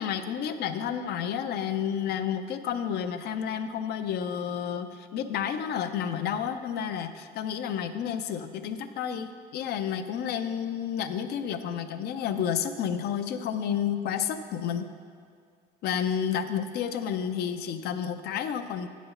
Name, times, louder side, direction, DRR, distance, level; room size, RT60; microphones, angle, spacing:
voice 1, 0.0-14.9 15.8-18.9, left 8 dB, 70° left, 9 dB, 0.6 m, -30 dB
8.6 x 5.1 x 6.4 m, 2.1 s
cardioid pair, 110°, 17 cm